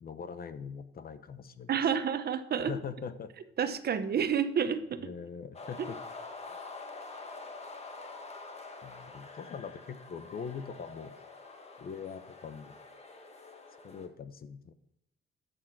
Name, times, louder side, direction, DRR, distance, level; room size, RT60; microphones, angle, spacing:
voice 1, 0.0-1.7 2.6-3.3 5.0-6.0 8.8-11.1 11.8-12.8 13.8-14.7, left 6 dB, 50° left, 12 dB, 0.9 m, -42 dB
voice 2, 1.7-2.7 3.6-5.0, right 7 dB, 55° right, 11 dB, 0.9 m, -29 dB
sound 1, 5.5-14.1, left 3 dB, 30° left, 1.5 m, -46 dB
12.0 x 6.4 x 4.7 m, 0.82 s
cardioid pair, 90°, 20 cm